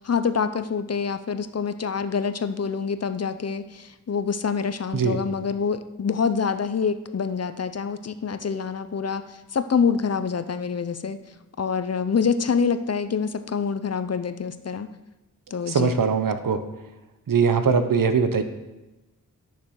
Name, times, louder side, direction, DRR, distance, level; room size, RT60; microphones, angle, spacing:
voice 1, 0.0-9.2 9.5-11.2 11.6-14.9 15.5-15.9, left 6 dB, 45° left, 11 dB, 0.7 m, -26 dB
voice 2, 15.7-16.6 17.3-18.4, right 5 dB, 70° right, 9 dB, 1.0 m, -21 dB
11.5 x 6.8 x 6.3 m, 1.0 s
wide cardioid pair, 80°, 35 cm